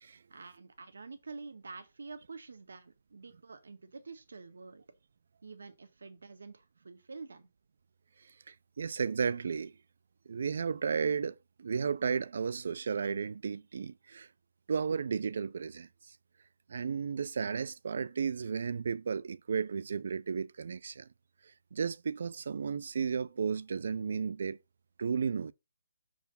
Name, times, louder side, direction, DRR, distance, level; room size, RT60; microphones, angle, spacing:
voice 1, 0.3-4.8 5.4-7.5, right 4 dB, 85° right, 1.5 m, -48 dB
voice 2, 8.5-9.7 10.3-14.3 14.7-16.2 16.7-21.1 21.7-24.6 25.0-25.5, right 6 dB, 45° right, 0.4 m, -33 dB
6.8 x 4.8 x 5.3 m
hypercardioid pair, 180°, 0 cm